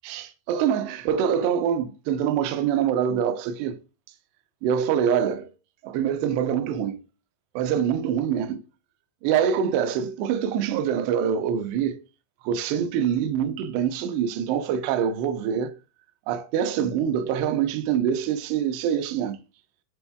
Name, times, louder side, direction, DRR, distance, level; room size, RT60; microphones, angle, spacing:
voice 1, 0.0-3.8 4.6-5.5 5.8-7.0 7.6-8.6 9.2-12.0 12.4-15.7 16.3-19.4, right 8 dB, 85° right, 2.4 m, -25 dB
9.8 x 4.4 x 2.3 m
omnidirectional pair, 5.6 m